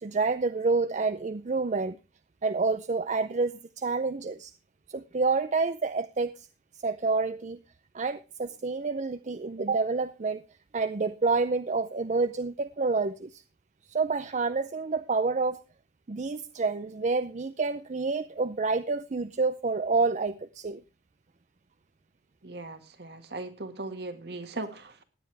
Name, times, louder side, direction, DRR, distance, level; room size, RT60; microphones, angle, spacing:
voice 1, 0.0-2.0 2.4-4.5 4.9-6.5 6.8-7.6 7.9-10.4 10.7-13.4 13.9-15.6 16.1-20.8, right 4 dB, 40° right, 0.5 m, -28 dB
voice 2, 22.4-25.0, right 2 dB, 65° right, 1.8 m, -38 dB
16.5 x 10.0 x 3.4 m
head